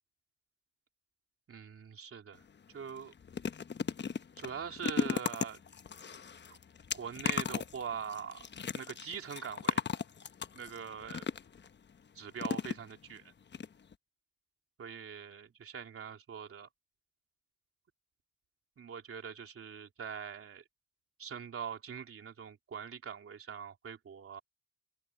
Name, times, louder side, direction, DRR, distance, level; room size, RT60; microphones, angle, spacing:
voice 1, 1.5-2.4 2.7-3.1 4.4-5.6 6.5-6.6 6.9-9.8 10.5-11.3 12.2-13.3 14.8-16.7 18.8-20.6 21.2-24.4, right 7 dB, 50° right, 3.4 m, -43 dB
sound 1, 2.3-2.5 2.9-11.7 12.4-13.2 13.5-13.7 13.9-14.0, left 6 dB, 35° left, 1.1 m, -37 dB
open air
cardioid pair, 90°, 30 cm